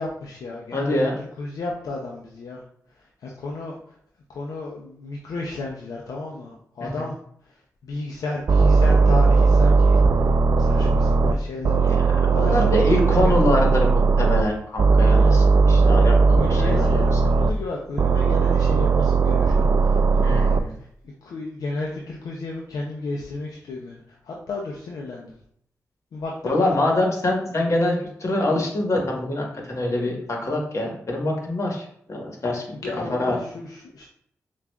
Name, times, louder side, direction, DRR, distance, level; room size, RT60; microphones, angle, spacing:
voice 1, 0.0-2.6 2.9-4.0 4.3-7.2 7.4-10.0 10.6-13.4 15.1-15.4 15.9-16.0 16.3-25.3 26.1-26.9 32.8-34.0, left 3 dB, 80° left, -2 dB, 0.5 m, -33 dB
voice 2, 0.7-1.1 6.8-7.1 11.9-17.2 20.2-20.7 26.4-32.6 33.1-33.4, left 1 dB, 50° left, 0 dB, 1.2 m, -25 dB
sound 1, 8.5-11.3 11.6-14.4 14.8-17.5 18.0-20.6, right 4 dB, 50° right, 0.3 m, -18 dB
5.8 x 2.4 x 2.2 m, 0.67 s
cardioid pair, 50°, 6 cm